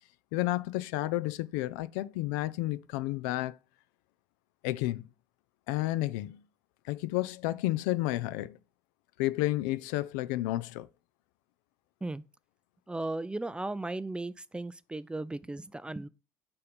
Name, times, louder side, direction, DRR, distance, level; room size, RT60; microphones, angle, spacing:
voice 1, 0.3-3.6 4.6-5.0 5.7-6.4 6.8-8.6 9.2-10.9, left 17 dB, 65° left, 0.4 m, -31 dB
voice 2, 12.9-16.1, right 2 dB, 10° right, 0.4 m, -36 dB
5.3 x 4.3 x 5.1 m
hypercardioid pair, 60°, 10 cm